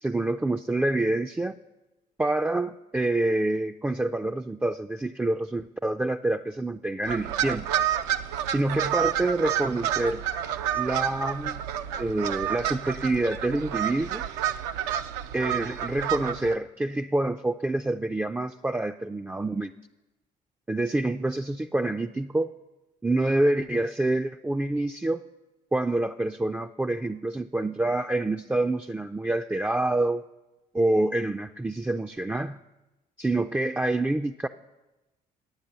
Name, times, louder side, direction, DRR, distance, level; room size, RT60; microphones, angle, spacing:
voice 1, 0.0-1.6 2.2-7.6 8.5-10.2 10.7-11.6 12.0-14.2 15.3-19.7 20.7-22.5 23.0-25.2 25.7-30.3 30.7-32.6 33.2-34.5, right 2 dB, 10° right, 5 dB, 0.3 m, -27 dB
sound 1, 7.0-16.5, right 10 dB, 80° right, 0.5 m, -29 dB
9.7 x 8.4 x 6.8 m, 1.1 s
hypercardioid pair, 55°, 20 cm